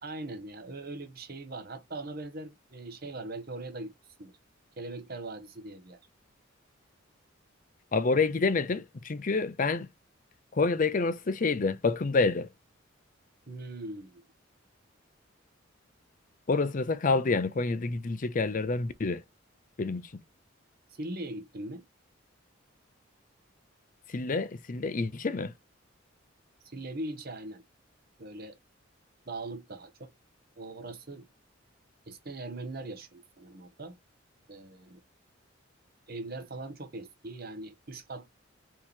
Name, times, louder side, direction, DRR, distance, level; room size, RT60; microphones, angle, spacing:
voice 1, 0.0-3.9 4.2-4.3 4.8-6.0 13.5-14.2 20.9-21.8 26.6-27.6 28.2-28.6 29.3-30.1 30.6-31.3 32.1-34.0 34.5-35.0 36.1-38.3, right 2 dB, 50° right, 1.1 m, -40 dB
voice 2, 7.9-9.9 10.5-12.5 16.5-19.2 19.8-20.1 24.1-25.5, left 3 dB, 40° left, 0.5 m, -28 dB
4.5 x 3.0 x 3.5 m
head